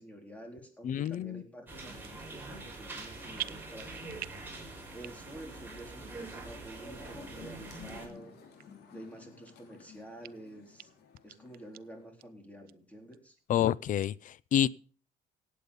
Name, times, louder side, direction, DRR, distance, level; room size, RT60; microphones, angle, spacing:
voice 1, 0.0-4.2 4.9-8.4 8.9-10.9 11.2-13.4, right 1 dB, 10° left, 4.0 m, -49 dB
voice 2, 0.8-1.4 13.5-14.7, left 10 dB, 50° left, 0.5 m, -28 dB
sound 1, 1.0-1.2 1.8-2.3 2.6-3.1 3.3-4.5 4.9-5.4 5.8-5.9 6.5-6.6 7.3-7.4 8.1-8.2 8.6-8.7 9.2-9.8 10.2-10.3 10.8-10.9 11.1-11.8 12.2-12.3 12.7-12.8 13.1-13.6 14.0-14.1, right 14 dB, 60° right, 0.5 m, -44 dB
sound 2, 1.7-8.1, right 2 dB, 10° right, 5.2 m, -44 dB
sound 3, 7.0-12.0, left 7 dB, 75° left, 3.3 m, -54 dB
17.0 x 8.4 x 5.3 m
cardioid pair, 110°, 17 cm